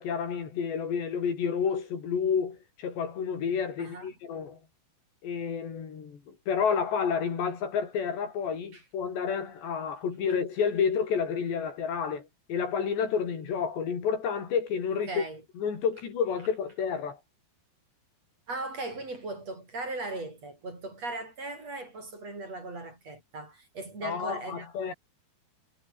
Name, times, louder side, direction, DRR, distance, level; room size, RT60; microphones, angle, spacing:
voice 1, 0.0-4.6 5.2-15.2 15.6-17.2 24.0-24.9, left 6 dB, 75° left, 6.6 m, -30 dB
voice 2, 3.8-4.1 8.7-8.8 15.1-15.4 18.5-24.9, right 2 dB, 35° right, 8.4 m, -38 dB
omnidirectional pair, 5.0 m